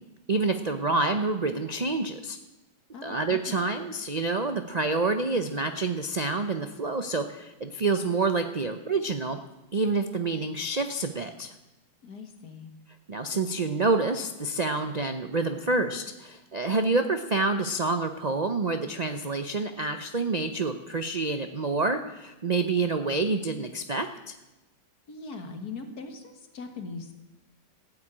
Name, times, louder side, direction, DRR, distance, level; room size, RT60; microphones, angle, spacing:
voice 1, 0.3-2.4 3.0-9.4 9.7-11.5 13.1-24.3, right 3 dB, 70° right, 7 dB, 0.4 m, -28 dB
voice 2, 2.9-3.7 12.0-12.7 25.1-27.1, left 4 dB, 60° left, 6 dB, 2.1 m, -40 dB
15.5 x 7.9 x 8.9 m, 1.0 s
omnidirectional pair, 1.9 m